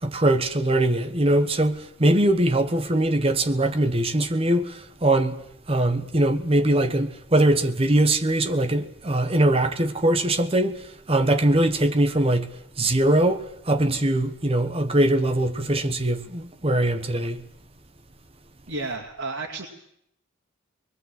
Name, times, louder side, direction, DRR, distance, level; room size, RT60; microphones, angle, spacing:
voice 1, 0.0-5.4 5.7-17.4, right 1 dB, 30° right, 1.2 m, -22 dB
voice 2, 18.7-19.6, right 3 dB, 85° right, 2.5 m, -31 dB
25.0 x 21.5 x 7.8 m
head